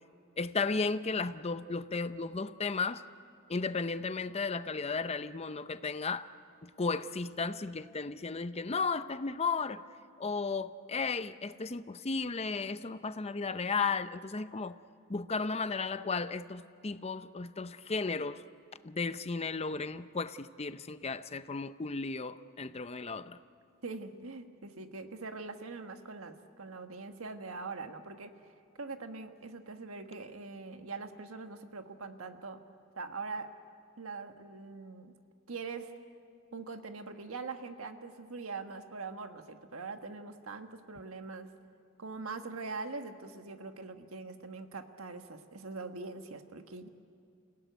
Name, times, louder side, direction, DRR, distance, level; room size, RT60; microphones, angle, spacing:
voice 1, 0.4-3.0 3.5-6.3 6.6-9.8 10.2-14.8 15.1-18.4 18.8-23.4, left 4 dB, 30° left, 13 dB, 0.6 m, -34 dB
voice 2, 23.8-28.3 28.8-32.6 33.0-33.5 34.0-35.1 35.5-35.9 36.5-41.5 42.0-46.9, right 4 dB, 90° right, 7 dB, 1.5 m, -42 dB
28.5 x 17.0 x 9.3 m, 2.3 s
head